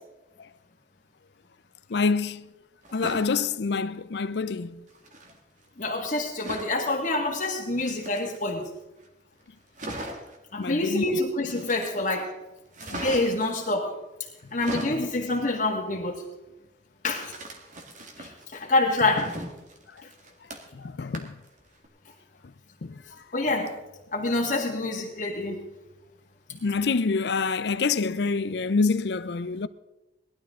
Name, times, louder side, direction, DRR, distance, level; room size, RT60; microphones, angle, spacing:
voice 1, 1.9-2.5 2.9-4.8 10.6-11.2 14.9-15.0 20.7-21.4 22.8-23.0 26.6-29.7, left 4 dB, 65° left, 0.5 m, -26 dB
sound 1, 2.8-3.3 4.9-5.3 6.4-6.8 7.7-8.6 9.1-9.2 9.4-9.5 9.7-10.4 11.5-12.1 12.7-13.5 14.4-15.0 17.2-18.4 18.9-20.8 21.1-21.5 21.8-21.9, right 1 dB, 45° right, 1.9 m, -38 dB
voice 2, 5.8-8.7 10.5-12.3 12.9-13.9 14.5-16.2 17.0-17.3 18.2-19.3 23.3-23.7 24.1-25.6, left 2 dB, 45° left, 1.8 m, -26 dB
19.5 x 12.0 x 3.7 m
head